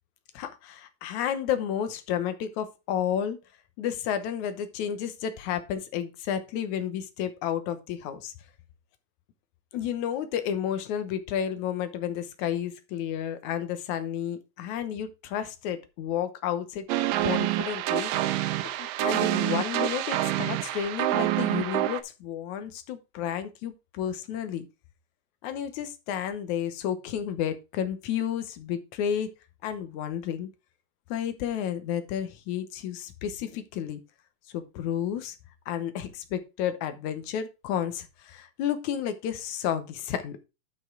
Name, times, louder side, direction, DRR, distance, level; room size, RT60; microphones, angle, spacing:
voice 1, 0.3-3.4 3.8-8.3 9.7-16.9 17.2-18.1 18.8-24.7 25.4-29.3 29.6-30.5 31.1-34.0 34.5-35.4 35.7-40.4, left 9 dB, 70° left, 10 dB, 2.2 m, -31 dB
sound 1, 16.9-22.0, right 14 dB, 85° right, 2.4 m, -27 dB
12.0 x 5.4 x 3.8 m, 0.27 s
omnidirectional pair, 3.9 m